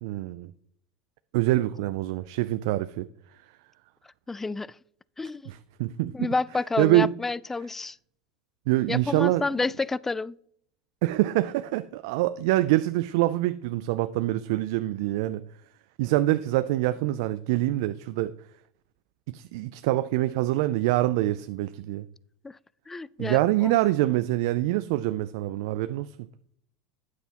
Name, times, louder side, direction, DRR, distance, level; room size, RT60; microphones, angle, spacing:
voice 1, 0.0-0.5 1.3-3.1 5.5-6.3 6.8-7.1 8.7-9.5 11.0-15.4 16.0-18.3 19.3-22.0 23.2-26.1, right 16 dB, 70° right, 0.4 m, -25 dB
voice 2, 4.3-4.8 5.2-5.5 6.1-8.0 8.9-10.4 22.4-22.6 22.9-23.8, left 3 dB, 15° left, 0.3 m, -29 dB
9.5 x 8.2 x 2.9 m
hypercardioid pair, 90°, 2 cm